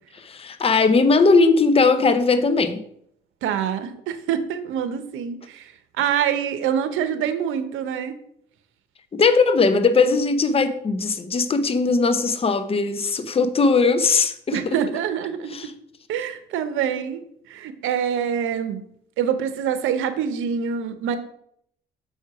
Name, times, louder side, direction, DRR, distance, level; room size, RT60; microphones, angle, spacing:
voice 1, 0.1-2.8 9.1-14.8 15.5-15.7, left 4 dB, 30° left, 0.7 m, -19 dB
voice 2, 3.4-8.1 14.5-15.5 16.1-17.2 17.5-18.8 19.2-21.2, right 8 dB, 90° right, 0.8 m, -25 dB
7.1 x 4.5 x 4.7 m
cardioid pair, 90°, 20 cm